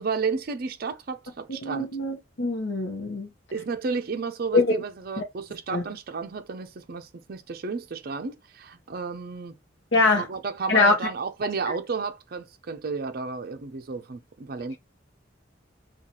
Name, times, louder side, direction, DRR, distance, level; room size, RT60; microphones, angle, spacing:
voice 1, 0.0-1.9 3.5-9.6 10.1-14.8, right 4 dB, 50° right, 0.5 m, -32 dB
voice 2, 1.6-3.3 4.5-4.8 5.2-5.3 5.7-5.8 9.9-10.2 10.7-10.9, left 3 dB, 85° left, 0.8 m, -22 dB
3.9 x 2.4 x 2.8 m
head